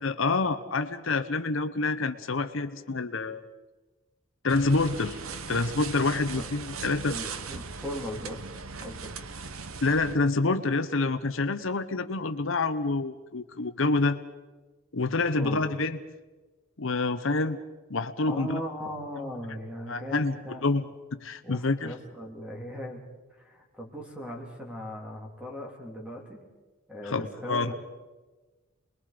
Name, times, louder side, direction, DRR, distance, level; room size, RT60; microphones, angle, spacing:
voice 1, 0.0-3.4 4.4-5.2 5.5-7.2 9.8-14.2 14.9-16.0 16.8-17.6 17.9-18.6 19.9-20.4 20.6-20.8 21.2-21.9 27.0-27.7, left 3 dB, 65° left, 9 dB, 0.9 m, -27 dB
sound 1, 4.5-10.2, right 5 dB, 85° right, 1.1 m, -39 dB
voice 2, 7.1-8.4 8.8-9.1 15.4-15.8 18.3-20.6 21.4-23.0 23.4-26.4 26.9-27.7, equal, 5° right, 0 dB, 3.3 m, -38 dB
28.5 x 21.5 x 5.2 m, 1.2 s
head